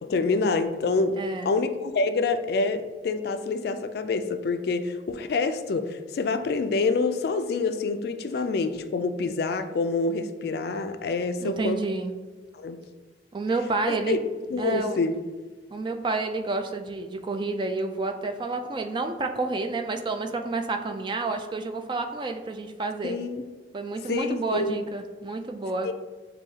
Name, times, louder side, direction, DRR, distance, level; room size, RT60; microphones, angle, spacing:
voice 1, 0.0-1.2 1.4-11.8 12.5-12.8 13.9-14.2 14.5-15.1 23.0-23.5 24.1-24.8 25.8-25.9, left 3 dB, 60° left, 9 dB, 0.3 m, -27 dB
voice 2, 1.2-1.5 11.4-12.1 13.3-14.2 14.6-15.0 15.7-23.2 23.7-25.9, right 3 dB, 25° right, 6 dB, 0.3 m, -29 dB
7.0 x 2.7 x 2.8 m, 1.3 s
head